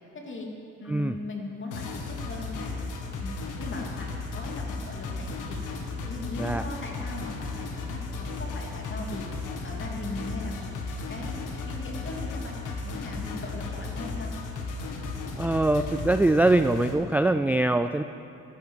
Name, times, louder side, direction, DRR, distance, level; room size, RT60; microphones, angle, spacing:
voice 1, 0.1-0.5 0.8-2.8 3.2-5.7 6.0-10.8 11.1-14.3, left 2 dB, 40° left, -1 dB, 3.0 m, -39 dB
sound 1, 1.7-16.9, left 3 dB, 85° left, 1.7 m, -35 dB
voice 2, 15.4-18.0, right 2 dB, 5° right, 9 dB, 0.3 m, -23 dB
12.0 x 10.5 x 8.3 m, 2.9 s
cardioid pair, 90°, 30 cm